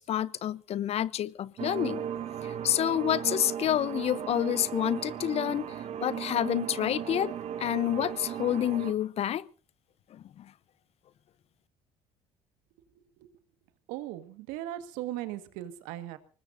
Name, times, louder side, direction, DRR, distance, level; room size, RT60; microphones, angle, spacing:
voice 1, 0.0-2.0 2.4-5.7 6.0-7.3 7.6-9.5 10.1-10.5, left 11 dB, 50° left, 0.8 m, -29 dB
sound 1, 1.6-8.9, right 9 dB, 55° right, 1.5 m, -36 dB
voice 2, 13.9-16.2, right 14 dB, 80° right, 1.7 m, -38 dB
24.5 x 20.0 x 2.7 m
supercardioid pair, 75°, 13 cm